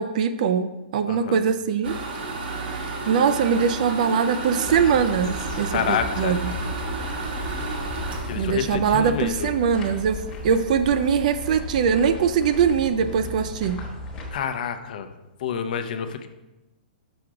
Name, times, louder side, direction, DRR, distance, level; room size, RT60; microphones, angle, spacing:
voice 1, 0.0-2.0 2.7-6.5 8.4-13.8, right 7 dB, 50° right, 11 dB, 0.3 m, -22 dB
voice 2, 1.1-1.4 5.7-6.4 8.3-9.5 14.3-15.1 15.4-16.3, left 7 dB, 55° left, 8 dB, 0.6 m, -28 dB
sound 1, 1.8-9.6 10.0-10.1 10.5-10.6 10.8-11.2, right 3 dB, 70° right, 1.2 m, -32 dB
sound 2, 4.6-14.3, left 2 dB, 15° left, 1.2 m, -35 dB
6.0 x 4.8 x 3.7 m, 1.0 s
hypercardioid pair, 165°, 5 cm